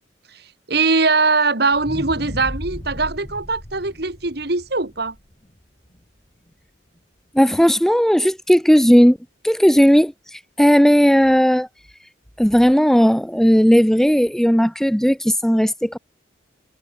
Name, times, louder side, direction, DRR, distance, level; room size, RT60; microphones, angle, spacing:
voice 1, 0.3-5.2, right 3 dB, 55° right, 2.2 m, -21 dB
sound 1, 1.7-6.0 6.5-6.6, equal, 30° left, 3.4 m, -35 dB
voice 2, 7.4-9.2 9.4-11.7 12.4-16.0, equal, ahead, 0.6 m, -15 dB
head